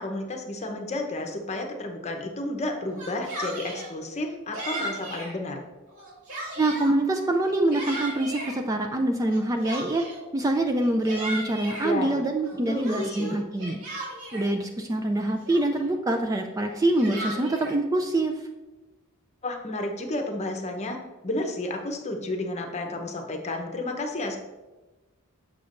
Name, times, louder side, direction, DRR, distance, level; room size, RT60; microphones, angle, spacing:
voice 1, 0.0-5.6 11.8-12.2 12.7-13.4 19.4-21.0 21.2-24.4, left 1 dB, 30° left, 3 dB, 0.8 m, -31 dB
Yell, 2.9-3.9 4.5-5.3 5.9-6.9 7.4-8.6 9.3-10.3 10.8-11.9 12.4-14.5 15.1-15.2 15.5-15.9 16.7-17.8, right 1 dB, 85° right, 2.2 m, -36 dB
voice 2, 6.6-10.1 10.3-13.8 14.3-18.3, right 1 dB, 15° right, 4 dB, 0.3 m, -25 dB
6.9 x 6.7 x 2.5 m, 1.1 s
head